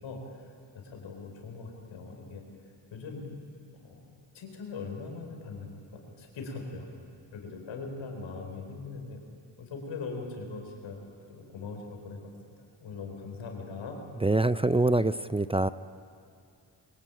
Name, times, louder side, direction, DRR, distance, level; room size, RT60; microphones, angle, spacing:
voice 1, 0.0-3.3 3.7-6.9 7.3-9.2 9.6-11.0 11.3-12.3 12.8-14.0, left 4 dB, 85° left, 2 dB, 4.7 m, -41 dB
voice 2, 14.2-15.7, right 2 dB, 15° right, 14 dB, 0.6 m, -25 dB
23.5 x 22.5 x 9.0 m, 2.4 s
cardioid pair, 60°, 45 cm